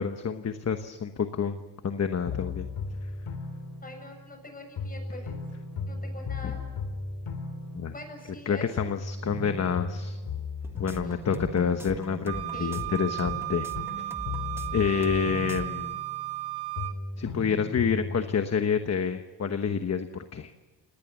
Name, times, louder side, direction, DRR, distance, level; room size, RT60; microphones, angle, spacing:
voice 1, 0.0-1.6 1.8-2.7 6.4-6.5 7.7-7.9 8.5-10.2 10.8-13.7 14.7-16.0 17.2-20.5, left 6 dB, 35° left, 8 dB, 1.1 m, -28 dB
sound 1, 2.3-4.4 4.8-8.5 8.8-12.4 12.8-16.5 16.8-18.3, left 4 dB, 80° left, 3.0 m, -36 dB
voice 2, 3.8-5.4 5.9-6.7 7.9-8.7 11.0-11.2 11.6-11.7 12.5-12.9, left 1 dB, 20° left, 4 dB, 7.4 m, -44 dB
sound 2, 10.6-15.2 15.5-15.7, right 1 dB, 5° right, 1.4 m, -41 dB
Wind instrument woodwind instrument, 12.3-17.0, right 17 dB, 65° right, 1.7 m, -35 dB
30.0 x 18.5 x 7.3 m, 1.2 s
cardioid pair, 125°, 44 cm